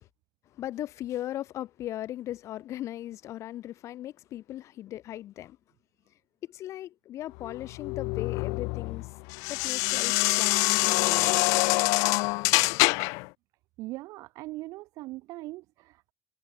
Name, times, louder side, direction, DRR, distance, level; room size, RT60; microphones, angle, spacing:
voice 1, 0.6-5.6 6.5-9.1 9.5-11.4, left 13 dB, 60° left, 2.2 m, -38 dB
sound 1, 7.4-13.3, left 29 dB, 90° left, 0.6 m, -25 dB
voice 2, 13.8-16.1, right 19 dB, 80° right, 1.2 m, -40 dB
cardioid pair, 105°, 6 cm